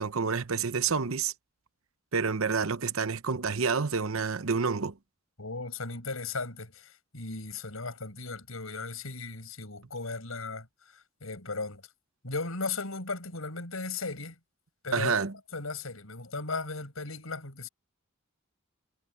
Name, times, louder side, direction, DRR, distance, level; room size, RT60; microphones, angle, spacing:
voice 1, 0.0-1.3 2.1-5.0 14.9-15.3, right 5 dB, 70° right, 0.9 m, -28 dB
voice 2, 5.4-10.7 10.9-11.8 12.2-14.4 14.8-15.2 15.5-17.7, left 3 dB, 80° left, 6.4 m, -36 dB
head